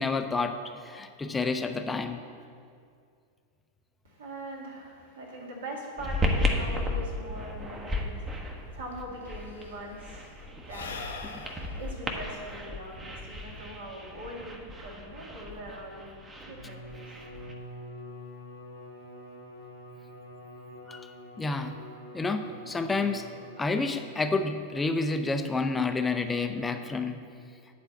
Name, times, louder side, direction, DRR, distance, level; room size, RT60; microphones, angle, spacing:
voice 1, 0.0-2.2 11.3-11.4 20.9-21.1 21.4-21.8 22.1-23.3 23.6-27.2, left 3 dB, 10° left, 7 dB, 0.6 m, -29 dB
voice 2, 4.0-16.2 16.5-17.0, right 1 dB, 65° right, -3 dB, 2.0 m, -42 dB
sound 1, 6.0-17.5, left 1 dB, 15° right, 1.0 m, -34 dB
Sigh / Breathing, 8.6-8.7 8.9-13.6, left 4 dB, 70° left, 0.8 m, -43 dB
Bowed string instrument, 16.4-24.7, equal, 85° right, 1.4 m, -46 dB
9.0 x 4.3 x 7.2 m, 2.2 s
figure-of-eight pair, 90°, 0 cm